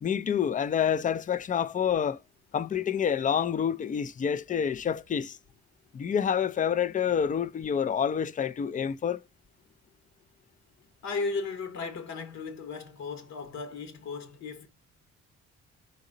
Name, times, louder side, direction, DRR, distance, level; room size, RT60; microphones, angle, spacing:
voice 1, 0.0-2.2 2.5-5.4 5.9-9.2, left 8 dB, 25° left, 0.4 m, -28 dB
voice 2, 11.0-14.7, left 4 dB, 65° left, 1.1 m, -35 dB
4.0 x 2.8 x 3.8 m
cardioid pair, 90°, 30 cm